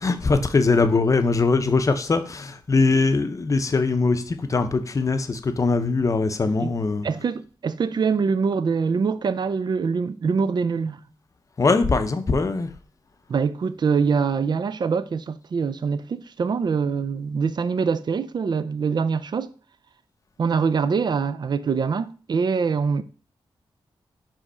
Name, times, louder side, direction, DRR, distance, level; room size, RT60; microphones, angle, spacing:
voice 1, 0.0-7.1 11.6-12.7, left 3 dB, 35° left, 0.6 m, -21 dB
voice 2, 7.0-11.0 13.3-19.5 20.4-23.0, right 5 dB, 50° right, 0.4 m, -24 dB
5.1 x 3.6 x 5.5 m
wide cardioid pair, 130°, 9 cm